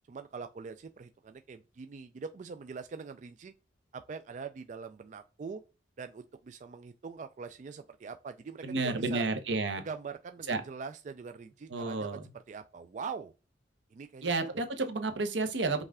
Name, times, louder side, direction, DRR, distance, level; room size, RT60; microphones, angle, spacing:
voice 1, 0.1-3.5 3.9-5.6 6.0-9.3 9.8-12.1 12.5-13.3 13.9-14.5, right 5 dB, 40° right, 0.3 m, -43 dB
voice 2, 8.6-9.8 10.5-10.6 11.7-12.3 14.2-15.8, right 3 dB, 85° right, 0.8 m, -31 dB
5.4 x 2.4 x 3.5 m
head